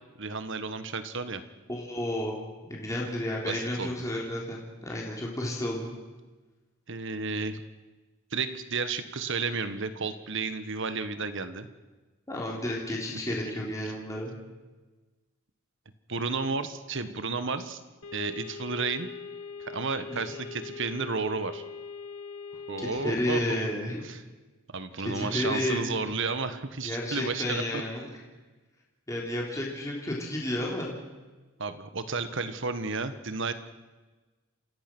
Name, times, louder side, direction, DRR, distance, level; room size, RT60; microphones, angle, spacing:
voice 1, 0.2-1.4 3.5-4.0 6.9-7.6 8.3-11.7 13.3-13.4 16.1-17.8 18.1-19.1 19.6-21.6 22.7-23.6 24.0-24.2 24.7-27.8 31.6-33.5, right 4 dB, 60° right, 11 dB, 1.5 m, -32 dB
voice 2, 1.7-2.3 2.7-5.9 12.3-14.3 20.1-20.2 22.8-24.0 25.1-26.0 26.8-28.1 29.1-31.0, left 1 dB, 15° left, -3 dB, 3.6 m, -31 dB
sound 1, 18.0-23.2, left 5 dB, 80° left, 1.4 m, -41 dB
29.5 x 16.0 x 6.2 m, 1.2 s
head